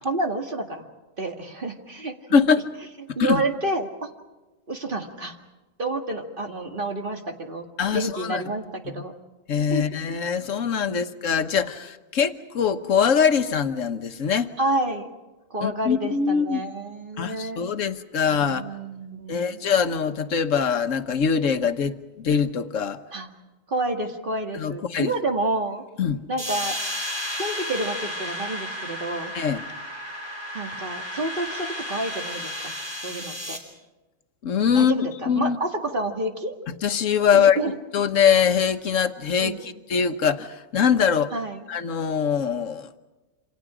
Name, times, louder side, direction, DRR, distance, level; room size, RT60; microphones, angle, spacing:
voice 1, 0.0-0.9 1.2-2.1 3.2-4.1 4.7-5.4 5.8-7.7 7.9-9.1 9.7-9.8 10.9-11.1 14.6-15.1 15.5-17.6 18.3-19.6 23.1-23.3 23.7-25.8 26.3-26.8 27.4-29.3 30.5-32.7 33.0-33.6 34.7-36.5 37.3-37.7 39.4-39.7 41.3-41.6, right 2 dB, 45° right, 3 dB, 2.1 m, -29 dB
voice 2, 2.3-2.7 3.2-3.4 7.8-8.4 8.9-9.0 9.5-14.5 15.6-16.6 17.2-18.7 19.3-23.0 24.5-25.1 26.0-26.3 29.3-29.6 34.4-35.0 35.3-35.6 36.8-37.6 37.9-41.3 41.7-42.9, left 7 dB, 85° left, 9 dB, 1.4 m, -23 dB
sound 1, 26.4-33.6, left 1 dB, 20° right, 4.5 m, -33 dB
28.0 x 26.5 x 5.0 m, 1.2 s
omnidirectional pair, 1.3 m